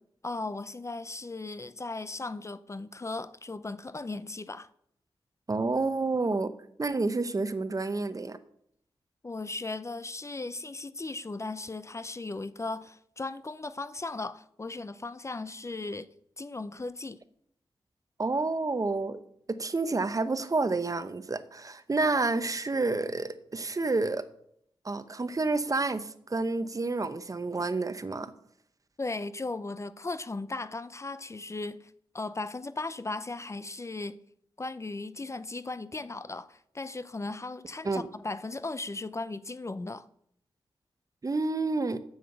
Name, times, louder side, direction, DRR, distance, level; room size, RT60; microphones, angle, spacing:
voice 1, 0.2-4.7 9.2-16.1 16.4-17.2 29.0-34.2 34.6-40.1, left 3 dB, 30° left, 0.5 m, -37 dB
voice 2, 5.5-6.5 6.8-8.4 18.2-19.2 19.5-24.2 24.8-28.3 37.8-38.1 41.2-42.0, right 3 dB, 35° right, 0.8 m, -29 dB
7.5 x 7.1 x 7.8 m
cardioid pair, 55°, 10 cm